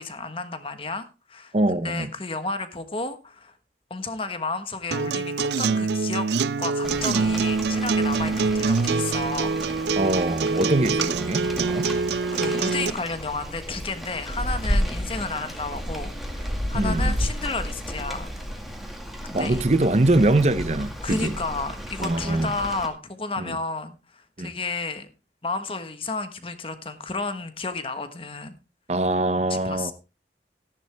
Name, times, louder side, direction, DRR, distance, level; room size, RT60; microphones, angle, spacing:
voice 1, 0.0-3.5 3.9-6.3 6.6-9.6 12.3-18.3 19.2-19.6 21.0-25.1 25.4-28.6 29.5-29.9, left 3 dB, 30° left, 1.3 m, -32 dB
voice 2, 1.5-2.1 10.0-11.9 16.7-17.1 19.3-21.4 22.0-22.5 23.4-23.6 24.4-24.5 28.9-29.9, right 2 dB, 40° right, 0.7 m, -23 dB
Acoustic guitar, 4.9-12.9, right 4 dB, 75° right, 0.5 m, -25 dB
Rain, 6.8-22.9, equal, ahead, 2.0 m, -32 dB
14.0 x 10.5 x 3.4 m
head